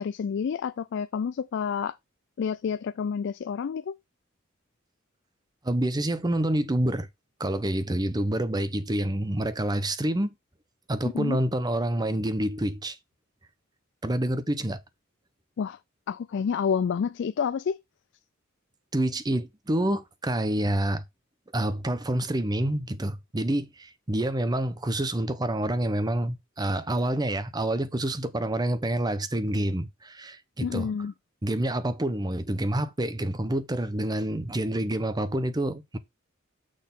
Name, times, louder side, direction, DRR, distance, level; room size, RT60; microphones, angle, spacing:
voice 1, 0.0-2.0 2.4-3.9 11.0-11.4 15.6-15.8 16.1-17.8 30.6-31.1, left 6 dB, 60° left, 0.3 m, -29 dB
voice 2, 5.6-7.1 7.4-10.3 10.9-13.0 14.0-14.8 18.9-21.0 21.5-30.9 31.4-36.0, right 1 dB, 20° right, 0.8 m, -27 dB
6.4 x 4.1 x 5.3 m
head